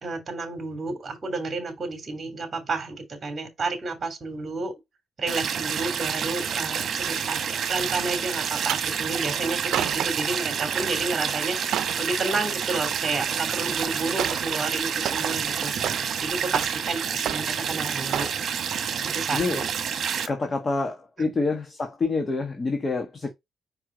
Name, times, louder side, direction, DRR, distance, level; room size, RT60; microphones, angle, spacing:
voice 1, 0.0-4.7 5.2-7.4 7.7-11.6 12.0-18.3 19.0-19.6 21.2-21.3, right 3 dB, 35° right, 3.0 m, -31 dB
sound 1, 5.3-20.3, right 7 dB, 60° right, 1.3 m, -28 dB
sound 2, 8.3-8.8 9.5-10.3 10.7-11.1 11.4-12.0 13.4-13.5 14.2-14.5 14.8-16.2 16.5-17.0 17.2-17.7 18.1-18.4 18.9-19.1 19.4-19.5, right 11 dB, 80° right, 0.5 m, -31 dB
voice 2, 19.3-19.7 20.3-23.3, left 3 dB, 35° left, 1.3 m, -27 dB
5.4 x 4.8 x 3.9 m
cardioid pair, 90°, 0 cm